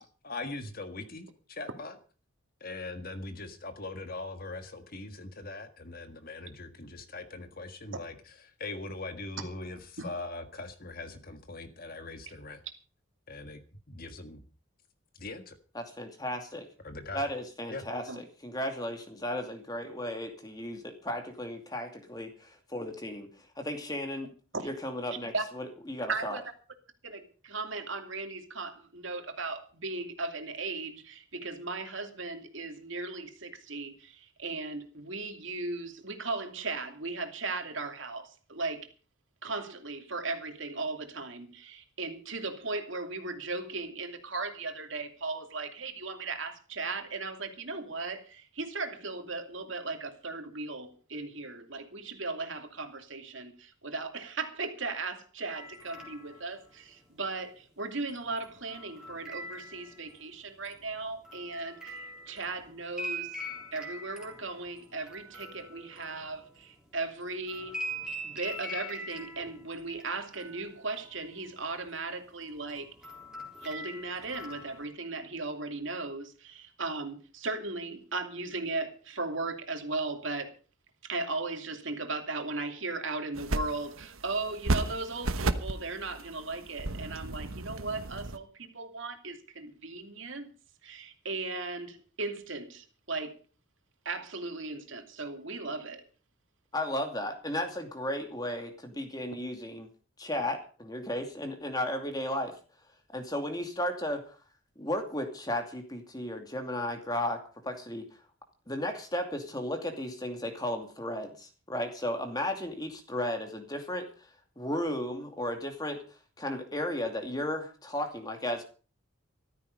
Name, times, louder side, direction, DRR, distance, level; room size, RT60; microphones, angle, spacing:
voice 1, 0.2-2.0 2.6-12.6 13.3-14.4 15.2-15.6 16.8-17.2 17.7-17.8, left 2 dB, 45° left, 1.7 m, -41 dB
voice 2, 15.7-16.7 17.1-23.3 23.6-24.3 24.6-26.4 96.7-99.9 100.2-102.6 103.1-104.4 104.8-108.0 108.7-114.3 114.6-116.0 116.4-118.6, left 1 dB, 20° left, 2.5 m, -34 dB
voice 3, 26.1-26.4 27.0-38.9 39.4-63.4 63.7-67.8 68.2-72.9 73.6-80.5 81.0-90.5 90.8-93.4 94.0-96.0, right 3 dB, 65° right, 2.7 m, -37 dB
sound 1, 55.5-56.4 58.1-60.2 60.6-66.9 67.2-70.1 70.3-71.3 71.6-71.9 72.4-74.9, equal, 5° right, 3.9 m, -42 dB
sound 2, 83.3-88.4, right 2 dB, 80° right, 1.1 m, -34 dB
14.5 x 13.5 x 5.4 m
head